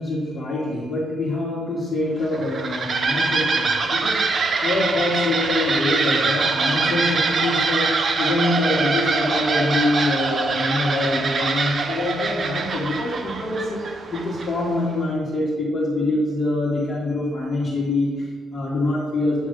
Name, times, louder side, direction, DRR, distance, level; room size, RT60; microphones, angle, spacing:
voice 1, 0.0-19.5, left 2 dB, 40° left, -8 dB, 1.7 m, -25 dB
sound 1, 2.2-14.8, right 4 dB, 45° right, 0.6 m, -23 dB
8.9 x 3.0 x 5.4 m, 1.5 s
cardioid pair, 90°, 0 cm